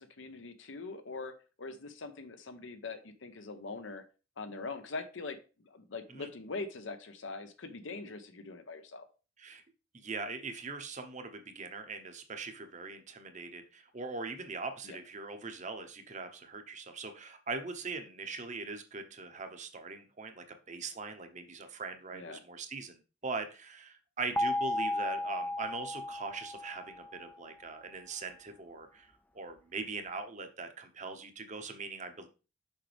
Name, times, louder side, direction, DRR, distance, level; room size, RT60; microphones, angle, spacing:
voice 1, 0.0-4.0 4.4-5.4 5.6-9.1 14.8-15.0 22.1-22.4, left 3 dB, 75° left, 9 dB, 0.8 m, -42 dB
voice 2, 9.9-23.0 23.2-32.3, right 4 dB, 40° right, 7 dB, 0.9 m, -41 dB
sound 1, 24.4-27.3, left 1 dB, 10° left, 0.4 m, -34 dB
6.5 x 5.2 x 3.4 m, 0.33 s
head